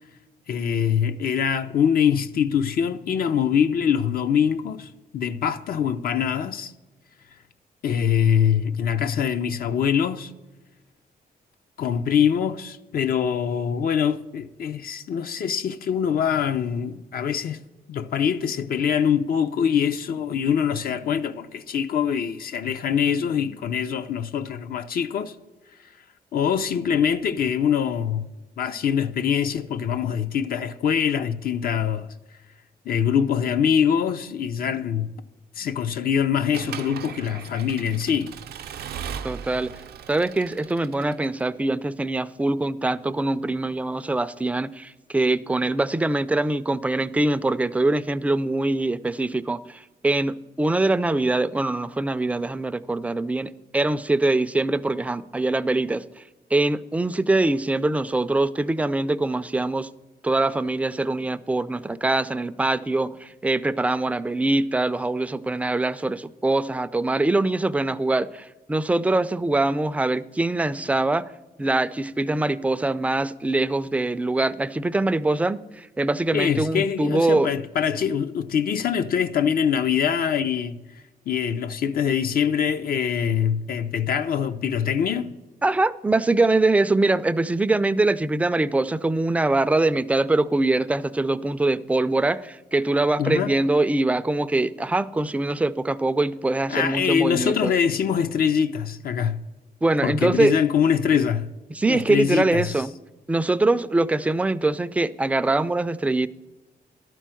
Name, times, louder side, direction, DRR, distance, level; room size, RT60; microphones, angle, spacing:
voice 1, 0.5-6.7 7.8-10.3 11.8-17.6 17.9-25.3 26.3-28.3 28.6-32.1 32.9-35.1 35.6-38.3 76.3-80.8 81.3-85.3 93.2-93.6 96.7-99.4 100.0-101.5 101.9-102.7, left 8 dB, 65° left, 0.5 m, -24 dB
Accelerating revving vroom / Mechanisms, 36.5-41.4, right 8 dB, 80° right, 0.5 m, -37 dB
voice 2, 39.2-39.7 40.1-56.2 56.5-59.9 60.2-71.3 71.6-77.5 85.6-97.7 99.8-100.6 101.7-102.9 103.3-106.3, right 2 dB, 10° right, 0.3 m, -23 dB
12.0 x 4.6 x 7.5 m
cardioid pair, 110°, 16 cm